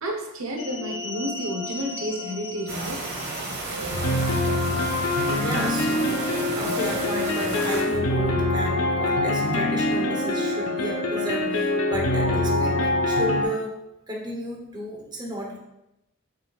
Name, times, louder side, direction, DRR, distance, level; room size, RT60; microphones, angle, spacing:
voice 1, 0.0-3.1 3.8-3.9, right 1 dB, 80° right, 2 dB, 1.1 m, -31 dB
sound 1, 0.6-13.4, left 2 dB, 70° left, 0.8 m, -25 dB
sound 2, 2.7-7.8, right 2 dB, 50° right, 1.5 m, -32 dB
voice 2, 5.4-13.8 14.1-15.6, equal, 20° right, -1 dB, 1.0 m, -33 dB
6.7 x 6.4 x 2.4 m, 0.90 s
head